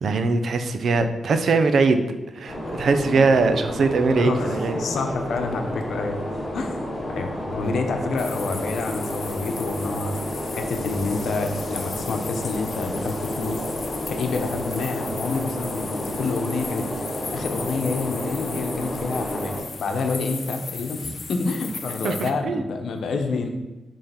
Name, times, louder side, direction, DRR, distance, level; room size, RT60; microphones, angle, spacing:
voice 1, 0.0-2.0 2.3-4.8 22.0-22.6, right 4 dB, 60° right, 8 dB, 0.7 m, -21 dB
sound 1, 2.5-19.6, left 1 dB, 30° left, 1.9 m, -31 dB
voice 2, 4.2-6.2 6.5-6.8 7.1-10.2 10.5-13.6 14.1-23.5, left 3 dB, 75° left, 5 dB, 1.0 m, -28 dB
sound 2, 8.2-22.3, left 5 dB, 45° left, 0.6 m, -37 dB
5.6 x 5.1 x 5.8 m, 1.1 s
wide cardioid pair, 140°, 0 cm